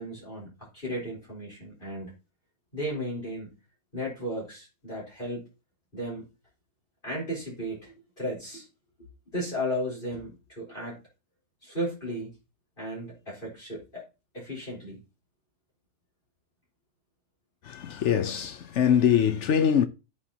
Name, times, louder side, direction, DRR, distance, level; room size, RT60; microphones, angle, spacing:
voice 1, 0.0-2.1 2.7-3.5 3.9-5.5 5.9-6.2 7.0-8.7 9.3-11.0 11.6-12.3 12.8-14.0 14.3-15.0, equal, 35° left, 4.4 m, -35 dB
voice 2, 17.6-19.9, left 8 dB, 60° left, 0.8 m, -23 dB
10.0 x 9.3 x 2.8 m
omnidirectional pair, 1.6 m